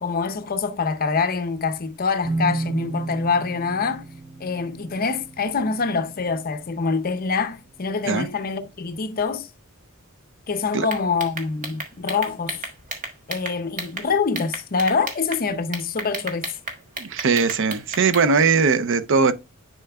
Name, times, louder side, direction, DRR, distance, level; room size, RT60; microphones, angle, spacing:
voice 1, 0.0-4.0 4.4-9.5 10.5-12.7 13.3-16.5, left 4 dB, 45° left, 0.6 m, -25 dB
sound 1, 2.2-7.8, right 2 dB, 15° right, 0.6 m, -33 dB
sound 2, 10.8-14.0 14.3-15.4 15.7-18.3, right 3 dB, 40° right, 1.4 m, -32 dB
voice 2, 17.0-19.3, right 5 dB, 60° right, 0.6 m, -20 dB
10.0 x 4.3 x 2.3 m
head